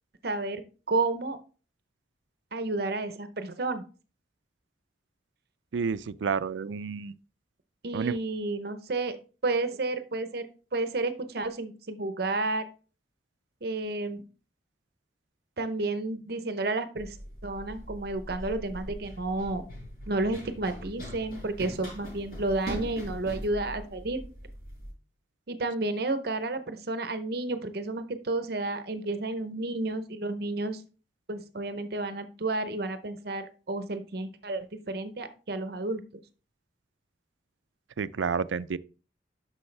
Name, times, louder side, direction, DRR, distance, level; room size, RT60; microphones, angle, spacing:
voice 1, 0.2-0.6 0.9-1.4 2.5-3.8 7.8-9.2 9.4-10.5 10.7-12.7 13.6-14.2 15.6-17.2 17.4-19.6 20.1-24.2 25.5-30.8 31.3-36.0, right 2 dB, 55° right, 0.7 m, -31 dB
voice 2, 5.7-7.2 7.9-8.1 38.0-38.8, right 6 dB, 85° right, 0.4 m, -30 dB
Run, 17.0-24.9, equal, 50° left, 5.2 m, -41 dB
9.7 x 6.4 x 3.3 m
head